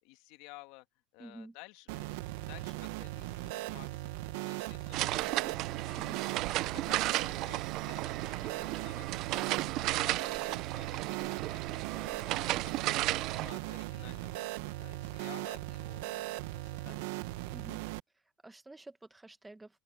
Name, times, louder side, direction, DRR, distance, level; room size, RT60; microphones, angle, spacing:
voice 1, 0.0-0.9 1.1-4.1 4.4-5.4 5.7-6.1 6.4-11.9 12.2-14.5 14.8-17.0, left 21 dB, 60° left, 2.2 m, -55 dB
voice 2, 1.2-1.5 11.8-12.6 17.5-17.8 18.1-19.8, right 2 dB, 5° right, 1.3 m, -51 dB
sound 1, 1.9-18.0, right 18 dB, 70° right, 1.3 m, -39 dB
sound 2, 4.9-13.5, right 17 dB, 45° right, 0.5 m, -34 dB
open air
supercardioid pair, 160°, 0 cm